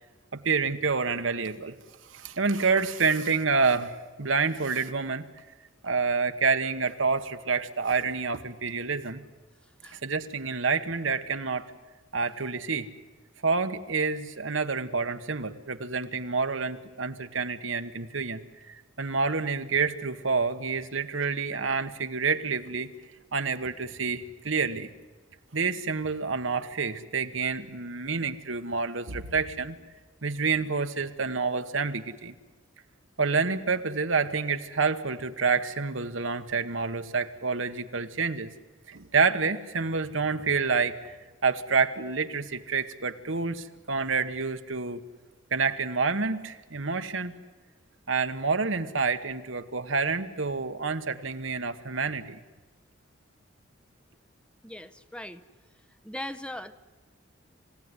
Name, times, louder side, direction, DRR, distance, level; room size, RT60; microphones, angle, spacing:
voice 1, 0.3-1.8 2.1-3.9 4.2-5.3 5.8-9.2 9.9-11.7 12.1-12.9 13.4-22.9 23.3-24.9 25.5-29.8 30.2-32.3 33.2-38.5 38.9-41.2 41.4-45.0 45.5-47.3 48.1-52.4, right 4 dB, 75° right, 9 dB, 1.2 m, -28 dB
voice 2, 54.6-55.4 56.0-56.7, left 1 dB, 5° left, 9 dB, 0.7 m, -39 dB
27.5 x 16.5 x 9.8 m, 1.3 s
head